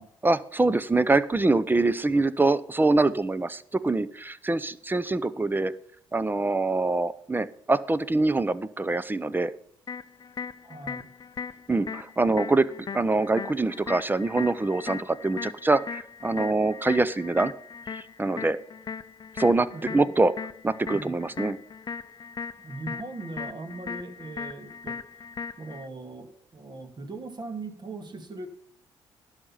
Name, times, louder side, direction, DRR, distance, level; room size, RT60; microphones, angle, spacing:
voice 1, 0.2-5.7 6.1-9.5 11.7-12.7 12.9-17.5 17.9-18.6 19.4-19.7 19.9-20.3 20.6-21.6, right 2 dB, 15° right, 16 dB, 0.8 m, -24 dB
sound 1, 9.9-25.9, left 6 dB, 40° left, 0.6 m, -39 dB
voice 2, 10.6-11.1 19.7-20.1 20.9-21.2 22.6-25.0 25.6-28.5, right 2 dB, 40° right, 6 dB, 2.1 m, -39 dB
11.0 x 6.7 x 5.6 m, 0.66 s
hypercardioid pair, 55°, 11 cm